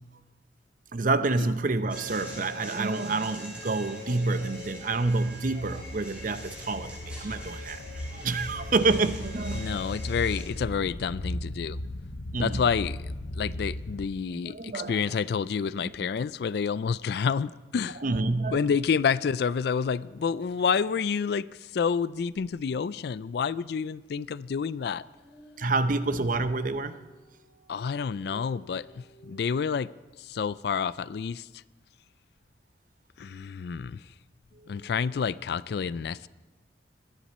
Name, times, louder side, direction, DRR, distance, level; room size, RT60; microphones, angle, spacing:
voice 1, 0.9-9.8 12.3-12.6 14.3-15.2 18.0-18.7 25.6-27.0 34.6-34.9, right 3 dB, 45° right, 0.7 m, -28 dB
sound 1, 1.9-10.4, left 1 dB, 5° right, 4.4 m, -43 dB
sound 2, 4.5-14.1, left 1 dB, 80° left, 0.9 m, -37 dB
voice 2, 9.5-11.8 12.4-13.0 13.3-18.0 18.5-25.0 27.7-29.9 30.2-31.5 33.2-34.0 34.7-36.3, left 6 dB, 60° left, 0.3 m, -29 dB
sound 3, 24.7-29.4, equal, 15° left, 2.1 m, -54 dB
22.5 x 10.0 x 4.2 m
head